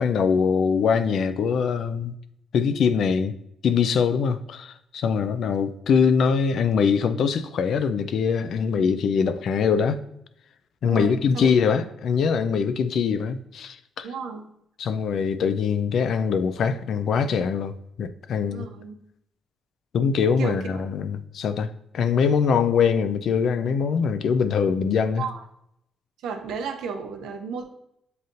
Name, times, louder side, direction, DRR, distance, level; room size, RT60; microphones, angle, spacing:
voice 1, 0.0-2.1 2.5-3.4 3.6-10.0 10.8-14.1 14.8-17.7 18.0-18.7 19.9-25.3, left 6 dB, 65° left, 11 dB, 0.4 m, -23 dB
voice 2, 5.1-5.5 10.8-11.5 14.0-14.5 18.4-19.0 20.4-20.8 25.2-25.4 26.2-27.7, right 5 dB, 80° right, 5 dB, 0.6 m, -34 dB
7.6 x 2.7 x 2.5 m, 0.75 s
cardioid pair, 90°, 0 cm